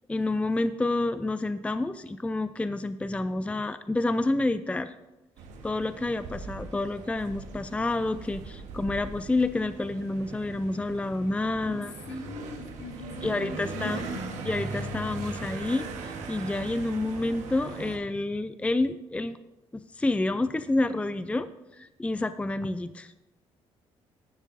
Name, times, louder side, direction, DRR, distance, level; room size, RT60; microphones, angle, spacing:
voice 1, 0.1-4.9 5.6-11.9 13.2-14.0 14.5-19.4 19.7-21.5 21.8-23.1, left 2 dB, 10° left, 12 dB, 0.4 m, -29 dB
sound 1, 5.4-18.0, right 3 dB, 85° right, 1.5 m, -39 dB
voice 2, 11.6-14.3, left 3 dB, 70° left, 0 dB, 2.7 m, -40 dB
14.5 x 11.0 x 2.7 m, 1.0 s
supercardioid pair, 75°, 12 cm